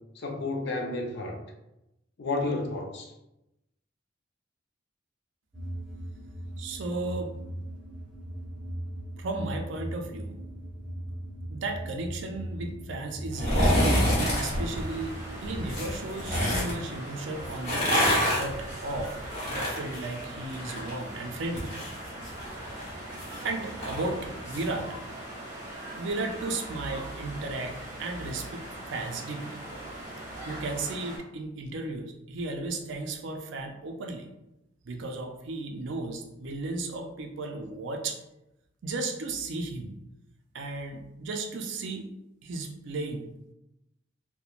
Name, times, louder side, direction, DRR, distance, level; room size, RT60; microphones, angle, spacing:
voice 1, 0.2-1.4 2.2-3.1, left 2 dB, 60° left, 2 dB, 0.5 m, -31 dB
sound 1, 5.5-15.8, right 1 dB, 5° right, 0.9 m, -39 dB
voice 2, 6.6-7.3 9.2-10.3 11.5-19.1 19.5-21.7 23.4-24.9 26.0-29.6 30.4-34.3 34.8-38.2 38.8-39.9 40.5-42.1 42.4-43.3, right 2 dB, 65° right, 3 dB, 0.4 m, -35 dB
sound 2, 13.3-14.5 15.7-16.7 17.5-20.9 21.2-24.7 25.0-25.1, equal, 35° left, 1.0 m, -27 dB
sound 3, 14.2-31.2, right 1 dB, 45° right, 0.8 m, -40 dB
2.9 x 2.1 x 2.4 m, 0.89 s
head